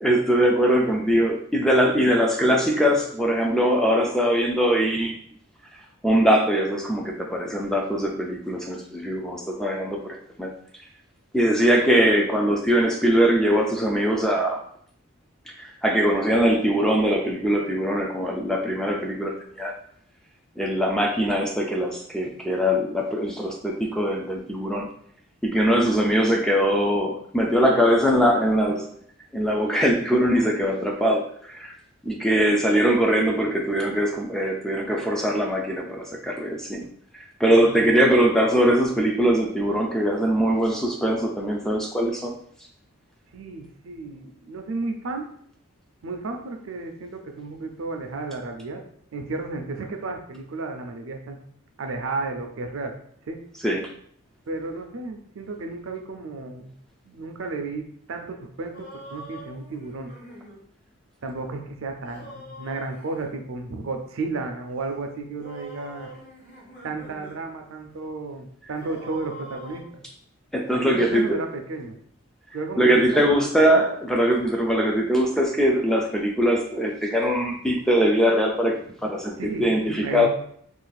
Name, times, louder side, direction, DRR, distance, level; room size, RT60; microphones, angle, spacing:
voice 1, 0.0-5.2 6.0-10.5 11.3-14.6 15.6-19.7 20.6-24.9 25.4-28.9 29.3-31.7 32.0-36.9 37.4-42.4 53.6-53.9 70.5-71.4 72.8-80.3, equal, ahead, 0 dB, 0.3 m, -22 dB
voice 2, 1.8-2.6 37.6-38.2 43.3-45.3 46.0-48.8 49.1-51.4 51.8-52.9 53.2-53.4 54.5-56.7 57.0-60.1 61.2-66.1 66.8-70.0 70.7-72.0 72.5-73.5 79.4-80.3, right 3 dB, 70° right, 4 dB, 0.5 m, -33 dB
sound 1, 58.7-60.6 62.0-63.3 65.4-67.4 67.7-67.8 68.8-69.8, equal, 35° left, 1.2 m, -44 dB
2.5 x 2.4 x 3.9 m, 0.63 s
head